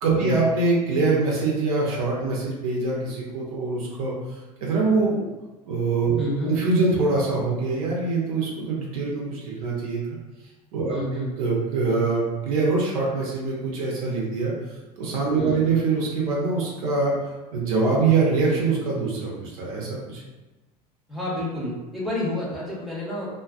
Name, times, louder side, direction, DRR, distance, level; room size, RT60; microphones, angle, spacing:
voice 1, 0.0-4.1 4.6-5.3 5.6-6.2 6.4-10.0 10.7-11.0 11.4-14.5 15.0-17.1 17.5-20.2, right 3 dB, 60° right, -4 dB, 0.7 m, -24 dB
voice 2, 6.2-6.5 10.9-11.3 15.4-15.6 21.1-23.3, left 1 dB, ahead, -7 dB, 0.9 m, -29 dB
2.5 x 2.3 x 2.4 m, 1.1 s
figure-of-eight pair, 75°, 20 cm